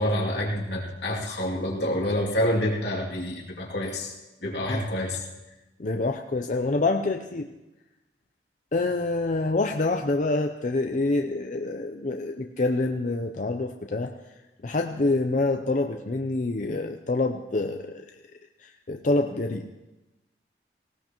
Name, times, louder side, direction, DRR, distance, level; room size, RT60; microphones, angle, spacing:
voice 1, 0.0-4.1 4.4-5.2, left 1 dB, 75° left, -3 dB, 2.6 m, -27 dB
voice 2, 5.8-7.5 8.7-14.1 14.6-18.0 18.6-19.7, left 2 dB, 45° left, 5 dB, 0.5 m, -26 dB
18.5 x 17.5 x 3.0 m, 1.0 s
head